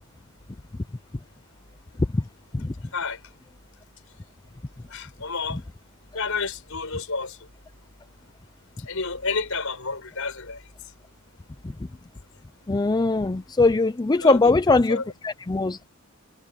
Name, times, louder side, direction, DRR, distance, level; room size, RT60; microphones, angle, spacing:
voice 1, 4.9-5.6 6.1-7.4 8.8-10.6 14.2-14.4 14.9-15.0, left 4 dB, 70° left, 5.9 m, -30 dB
voice 2, 12.7-15.8, left 3 dB, 20° left, 0.4 m, -21 dB
head